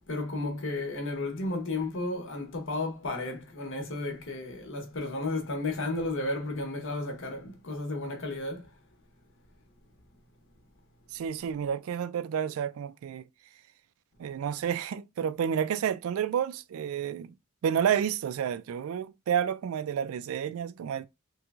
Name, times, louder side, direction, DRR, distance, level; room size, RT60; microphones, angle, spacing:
voice 1, 0.1-8.6, left 2 dB, 60° left, 0.9 m, -33 dB
voice 2, 11.1-13.3 14.2-17.3 17.6-21.1, right 8 dB, 70° right, 0.3 m, -30 dB
3.4 x 3.0 x 2.3 m
head